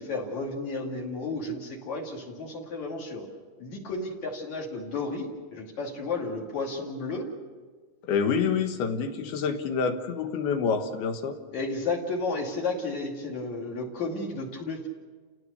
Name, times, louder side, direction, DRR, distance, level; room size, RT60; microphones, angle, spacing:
voice 1, 0.0-3.3 3.6-7.3 11.5-14.9, left 3 dB, 50° left, 0 dB, 3.6 m, -32 dB
voice 2, 8.0-11.3, left 6 dB, 80° left, 6 dB, 3.3 m, -27 dB
30.0 x 17.5 x 6.8 m, 1.4 s
omnidirectional pair, 4.5 m